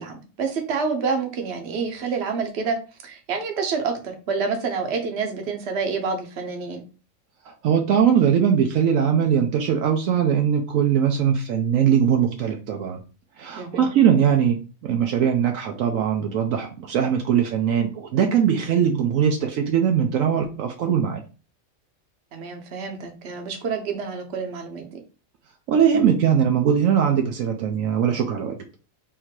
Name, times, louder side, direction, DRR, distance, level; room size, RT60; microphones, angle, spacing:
voice 1, 0.0-2.8 3.0-6.8 13.6-13.9 22.3-25.0, right 5 dB, 55° right, 4 dB, 1.1 m, -28 dB
voice 2, 7.5-13.0 13.4-14.6 14.8-21.2 25.7-28.6, right 8 dB, 75° right, 4 dB, 1.0 m, -21 dB
3.7 x 2.7 x 4.5 m, 0.34 s
omnidirectional pair, 1.4 m